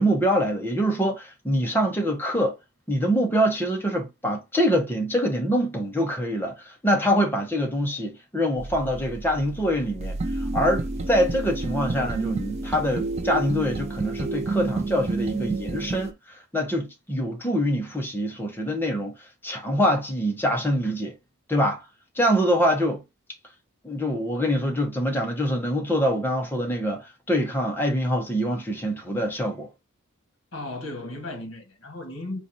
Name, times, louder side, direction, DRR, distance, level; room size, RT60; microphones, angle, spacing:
voice 1, 0.0-2.5 2.9-19.1 19.4-21.1 21.5-21.8 22.1-23.0 23.8-29.7, equal, 10° left, 0.7 m, -25 dB
sound 1, 8.6-16.1, right 3 dB, 30° right, 0.4 m, -30 dB
voice 2, 30.5-32.5, left 2 dB, 60° left, 1.4 m, -35 dB
4.0 x 2.4 x 2.7 m
head